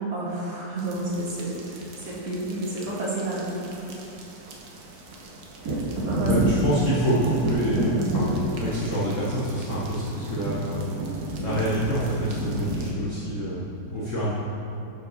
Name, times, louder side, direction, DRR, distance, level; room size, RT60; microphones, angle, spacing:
voice 1, 0.1-1.5 2.0-3.7 6.0-6.3, right 2 dB, 35° right, -6 dB, 1.8 m, -30 dB
sound 1, 0.8-12.9, right 1 dB, 65° right, 1.4 m, -30 dB
voice 2, 6.2-10.8 11.4-14.3, right 1 dB, 50° left, -7 dB, 1.2 m, -27 dB
10.0 x 5.3 x 4.0 m, 2.8 s
omnidirectional pair, 1.8 m